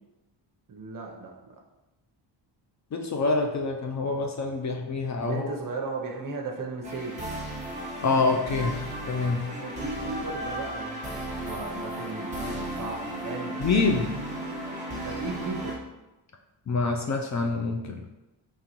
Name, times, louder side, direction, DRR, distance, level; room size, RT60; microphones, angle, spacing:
voice 1, 0.7-1.6 5.2-7.3 9.5-13.6 15.0-15.8, right 3 dB, 45° right, 1 dB, 0.7 m, -36 dB
voice 2, 2.9-5.5 8.0-9.5 13.6-14.1 16.7-18.0, left 3 dB, 40° left, 3 dB, 0.4 m, -26 dB
sound 1, 6.8-15.8, right 1 dB, 15° right, 1.0 m, -35 dB
3.6 x 3.1 x 2.9 m, 1.0 s
cardioid pair, 75°, 46 cm